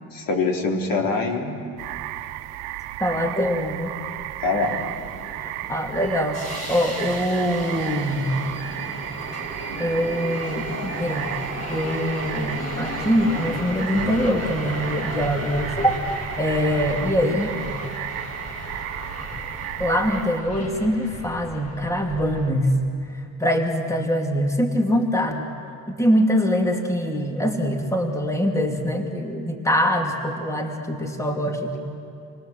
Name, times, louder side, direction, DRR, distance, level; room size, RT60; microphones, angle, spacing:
voice 1, 0.1-1.6 4.4-4.7 17.3-17.4, left 3 dB, 60° left, 1 dB, 3.7 m, -24 dB
sound 1, 1.8-20.4, right 15 dB, 90° right, 0.9 m, -34 dB
voice 2, 3.0-3.9 5.4-6.4 6.7-8.3 9.8-16.0 16.4-17.8 19.8-22.8 23.1-25.5 26.0-31.8, equal, 10° left, 3 dB, 2.6 m, -23 dB
Subway metro underground, 4.6-22.5, equal, 45° left, 5.0 m, -34 dB
27.0 x 18.5 x 7.7 m, 2.5 s
supercardioid pair, 85°, 38 cm